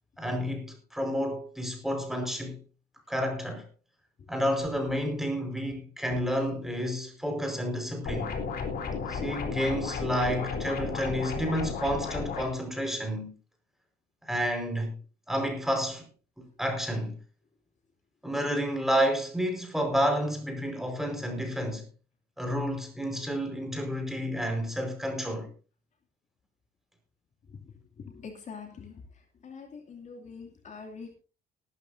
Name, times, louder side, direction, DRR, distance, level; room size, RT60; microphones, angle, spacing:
voice 1, 0.2-2.6 3.1-3.7 4.3-8.4 9.1-13.3 14.2-14.9 15.3-16.1 16.4-17.2 18.2-21.9 22.4-25.5, equal, ahead, 4.8 m, -30 dB
sound 1, 8.1-12.4, left 5 dB, 65° left, 3.6 m, -33 dB
voice 2, 28.0-28.9 29.4-31.2, left 5 dB, 45° left, 2.6 m, -44 dB
19.0 x 12.5 x 2.7 m
cardioid pair, 110°, 17 cm